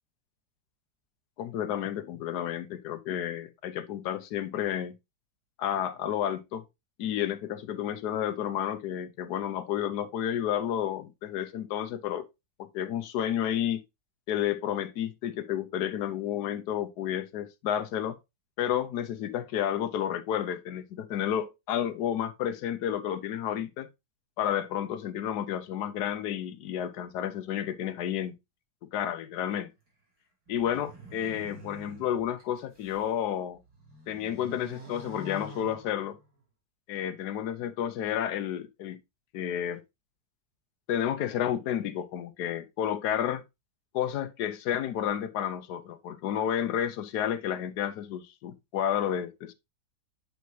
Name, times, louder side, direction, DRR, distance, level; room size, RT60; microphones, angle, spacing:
voice 1, 1.4-4.9 5.6-6.6 7.0-12.3 12.6-13.8 14.3-18.2 18.6-23.9 24.4-28.3 28.9-29.7 30.5-33.6 34.1-36.2 36.9-39.0 39.3-39.8 40.9-43.4 43.9-49.5, left 10 dB, 80° left, 1.3 m, -31 dB
sound 1, 30.5-33.1 33.6-36.4, equal, 70° right, 3.2 m, -47 dB
8.1 x 4.7 x 2.7 m
omnidirectional pair, 1.7 m